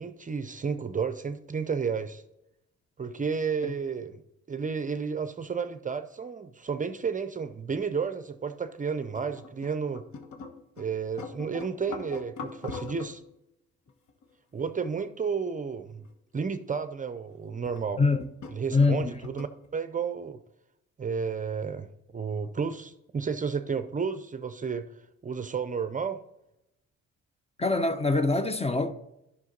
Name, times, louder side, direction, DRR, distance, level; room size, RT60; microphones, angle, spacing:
voice 1, 0.0-2.2 3.0-4.2 4.5-10.0 10.8-13.2 14.5-16.0 16.3-18.0 18.5-20.4 21.0-24.9 25.2-26.2, right 6 dB, 25° right, 0.5 m, -32 dB
sound 1, 9.0-10.8 11.2-13.2 13.9-14.3 14.9-15.0 15.7-16.1 16.8-16.9 17.6-17.9 18.1-19.7, left 5 dB, 70° left, 1.3 m, -42 dB
voice 2, 18.7-19.1 27.6-28.9, left 3 dB, 20° left, 0.6 m, -24 dB
10.5 x 5.9 x 3.9 m
cardioid pair, 90°, 30 cm